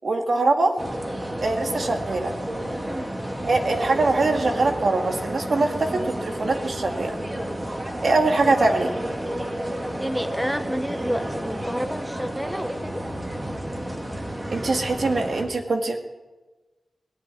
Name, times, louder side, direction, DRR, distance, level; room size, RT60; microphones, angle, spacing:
voice 1, 0.0-0.7 1.4-2.3 3.4-7.2 8.0-9.0 14.5-16.0, right 3 dB, 60° right, 4 dB, 1.8 m, -23 dB
sound 1, 0.8-15.5, right 1 dB, 25° right, 2.2 m, -31 dB
voice 2, 10.0-13.1, equal, 5° right, 8 dB, 1.0 m, -30 dB
18.0 x 7.6 x 9.6 m, 1.2 s
wide cardioid pair, 105°, 0 cm